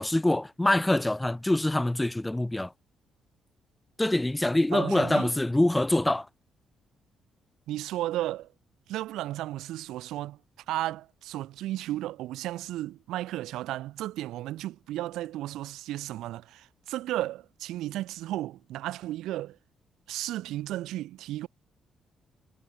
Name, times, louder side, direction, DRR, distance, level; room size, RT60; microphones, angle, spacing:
voice 1, 0.0-2.7 4.0-6.3, left 1 dB, 10° left, 1.6 m, -25 dB
voice 2, 4.7-5.3 7.7-8.5 8.9-10.4 10.7-19.6 20.1-21.5, right 15 dB, 90° right, 1.6 m, -34 dB
cardioid pair, 90°, 0 cm